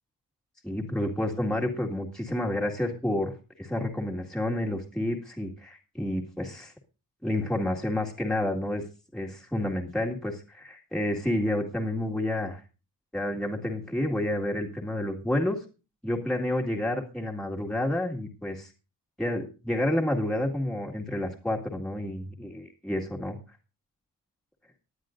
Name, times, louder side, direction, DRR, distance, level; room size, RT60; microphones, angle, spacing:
voice 1, 0.6-6.7 7.2-8.8 9.1-12.6 13.1-15.6 16.0-18.7 19.2-23.4, left 1 dB, ahead, 0 dB, 1.9 m, -29 dB
19.0 x 11.5 x 2.5 m, 0.32 s
wide cardioid pair, 180°, 34 cm